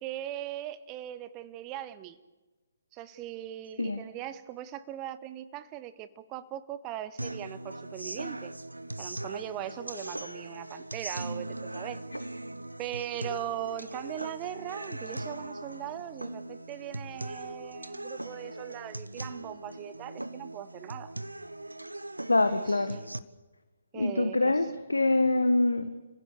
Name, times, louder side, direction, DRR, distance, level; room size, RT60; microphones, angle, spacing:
voice 1, 0.0-2.2 2.9-8.5 9.0-12.0 12.8-21.1 22.5-22.8 23.9-24.6, right 12 dB, 20° right, 14 dB, 1.1 m, -40 dB
sound 1, 7.2-23.2, right 1 dB, 80° right, 1.1 m, -40 dB
voice 2, 22.3-23.0 23.9-25.9, left 2 dB, 75° left, 10 dB, 1.5 m, -25 dB
30.0 x 16.0 x 8.3 m, 1.2 s
figure-of-eight pair, 135°, 0 cm